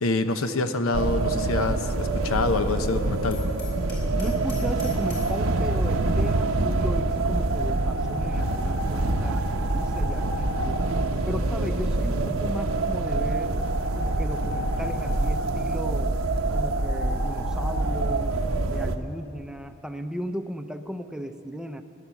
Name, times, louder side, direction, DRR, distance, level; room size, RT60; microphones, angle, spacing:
voice 1, 0.0-3.4, left 2 dB, 85° left, 9 dB, 0.9 m, -26 dB
sound 1, 0.9-19.0, right 2 dB, 75° right, 0.9 m, -25 dB
Hammer, 3.3-5.4, left 5 dB, 60° left, 4.1 m, -44 dB
voice 2, 4.1-10.8 11.3-13.5 13.9-16.1 16.5-18.4 18.7-21.8, equal, 5° right, 7 dB, 0.5 m, -35 dB
16.0 x 10.5 x 7.1 m, 2.5 s
head